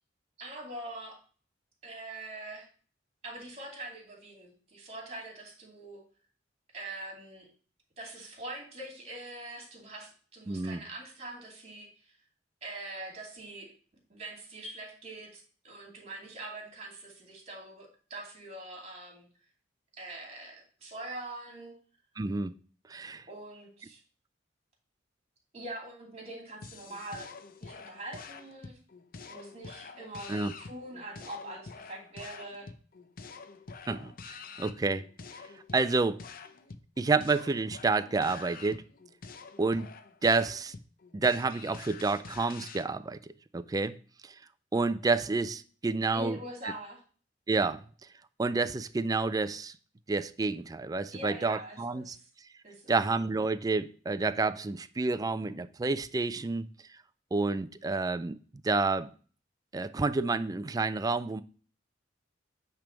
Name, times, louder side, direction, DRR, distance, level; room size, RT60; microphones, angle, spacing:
voice 1, 0.4-1.2 1.8-2.7 3.2-6.0 6.7-7.5 8.0-11.9 12.6-13.7 14.1-19.3 20.0-21.7 23.3-24.0 25.5-27.3 27.6-28.8 29.3-32.7 46.1-47.0 51.1-52.3 52.6-52.9, right 1 dB, 35° right, 2.7 m, -43 dB
voice 2, 10.5-10.8 22.2-22.5 22.9-23.2 30.3-30.5 33.9-35.0 35.7-36.2 37.0-38.8 39.6-39.9 40.2-40.7 41.1-43.2 43.5-44.0 44.2-44.3 44.7-46.4 46.6-46.7 47.5-47.8 48.4-49.7 50.1-52.2 52.9-56.7 57.3-58.4 58.6-59.1 59.7-61.4, right 3 dB, 20° right, 0.4 m, -29 dB
sound 1, 26.6-42.9, left 4 dB, 50° left, 0.6 m, -47 dB
8.9 x 3.4 x 5.1 m
head